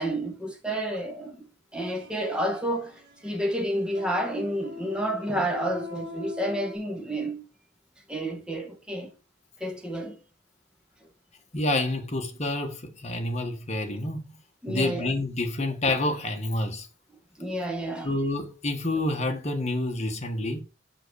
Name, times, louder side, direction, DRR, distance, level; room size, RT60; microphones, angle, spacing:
voice 1, 0.0-1.5 1.7-2.9 3.2-7.4 8.1-9.1 9.6-10.2 13.9-14.0 14.6-15.1 17.4-18.2, right 1 dB, 5° right, 1.7 m, -30 dB
sound 1, 1.8-6.8, left 2 dB, 70° right, 3.1 m, -42 dB
voice 2, 11.5-14.4 14.7-16.9 18.0-20.6, left 2 dB, 35° left, 1.6 m, -28 dB
6.1 x 5.4 x 6.4 m
head